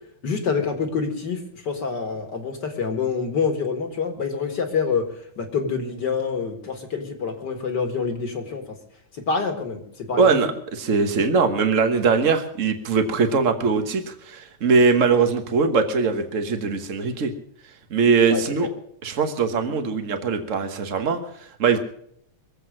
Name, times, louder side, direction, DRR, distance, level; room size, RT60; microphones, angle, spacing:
voice 1, 0.2-5.1 5.4-8.8 9.2-10.4 18.3-18.7, left 5 dB, 45° left, 5 dB, 1.8 m, -26 dB
voice 2, 10.2-17.3 17.9-18.7 19.0-21.8, right 5 dB, 70° right, 7 dB, 0.7 m, -21 dB
22.5 x 7.9 x 6.3 m, 0.67 s
omnidirectional pair, 3.3 m